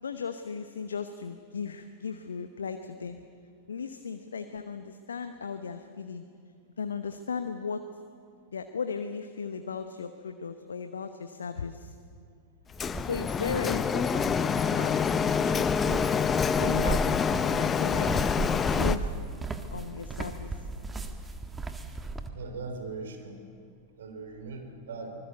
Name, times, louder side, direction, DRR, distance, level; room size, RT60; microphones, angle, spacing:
voice 1, 0.0-3.2 3.7-6.2 6.8-7.8 8.5-11.9 13.0-16.1 16.6-19.1 19.7-20.5, left 5 dB, 70° left, 8 dB, 1.0 m, -36 dB
Printer, 12.8-19.0, left 6 dB, 20° left, 0.8 m, -26 dB
sound 1, 12.8-22.3, right 2 dB, 10° right, 1.6 m, -36 dB
voice 2, 22.3-23.4 24.0-25.1, right 3 dB, 65° right, 6 dB, 3.6 m, -40 dB
25.0 x 20.5 x 8.0 m, 2.2 s
figure-of-eight pair, 90°, 0 cm